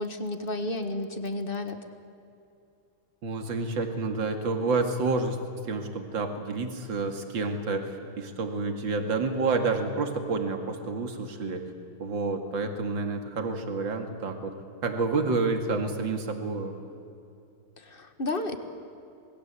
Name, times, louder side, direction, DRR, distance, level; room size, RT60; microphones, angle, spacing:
voice 1, 0.0-1.8 17.8-18.6, left 2 dB, 25° left, 8 dB, 1.7 m, -32 dB
voice 2, 3.2-11.6 12.0-14.6 14.8-16.8, right 3 dB, 60° right, 5 dB, 2.9 m, -29 dB
27.0 x 21.0 x 8.3 m, 2.7 s
omnidirectional pair, 2.3 m